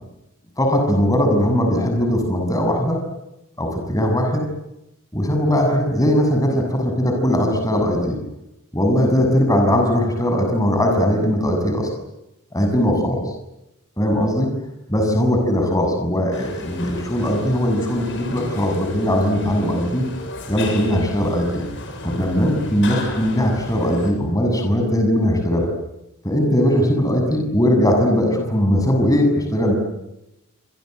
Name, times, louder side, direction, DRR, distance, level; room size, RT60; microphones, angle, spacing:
voice 1, 0.6-3.0 3.6-4.4 5.1-8.2 8.7-11.9 12.5-13.2 14.0-14.5 14.9-20.1 20.5-21.6 22.0-25.7 26.2-29.7, equal, 15° left, 3 dB, 7.2 m, -19 dB
sound 1, 16.3-24.1, left 2 dB, 55° left, 7.8 m, -34 dB
27.5 x 26.5 x 8.0 m, 0.90 s
head